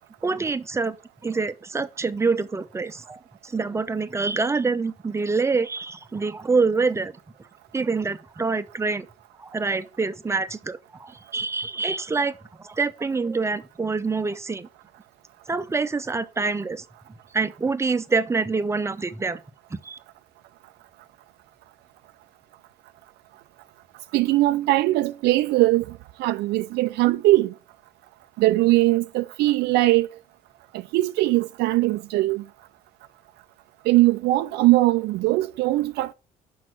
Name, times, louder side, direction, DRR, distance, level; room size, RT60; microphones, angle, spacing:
voice 1, 0.2-1.0 1.2-7.1 7.7-9.1 9.4-14.7 15.5-16.8 17.3-19.4 19.7-20.0, right 4 dB, 15° right, 0.7 m, -26 dB
voice 2, 24.1-25.9 26.2-27.5 28.4-30.1 30.9-32.4 33.9-36.1, right 18 dB, 80° right, 0.4 m, -20 dB
6.1 x 5.5 x 6.2 m
cardioid pair, 110°, 17 cm